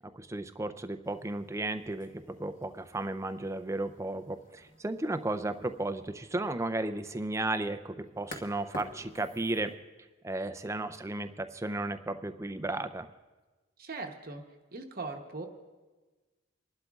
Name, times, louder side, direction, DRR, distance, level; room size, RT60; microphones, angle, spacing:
voice 1, 0.1-9.7 10.2-13.1, right 2 dB, 15° right, 9 dB, 0.4 m, -34 dB
sound 1, 1.0-9.7, left 1 dB, 40° left, 1.3 m, -52 dB
voice 2, 13.8-14.4 14.7-15.5, right 3 dB, 45° right, 3 dB, 0.9 m, -39 dB
29.5 x 12.0 x 2.4 m, 1.3 s
head